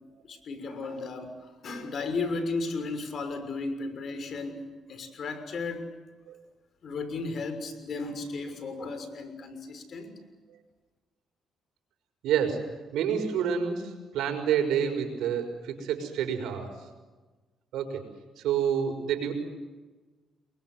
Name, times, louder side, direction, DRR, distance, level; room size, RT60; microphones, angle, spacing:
voice 1, 0.2-5.9 6.8-10.2, left 3 dB, 55° left, 9 dB, 6.3 m, -35 dB
voice 2, 12.2-12.6 12.9-16.7 17.7-18.0 18.4-19.3, right 8 dB, 85° right, 6 dB, 5.9 m, -28 dB
29.5 x 23.0 x 8.0 m, 1.3 s
cardioid pair, 90°, 0 cm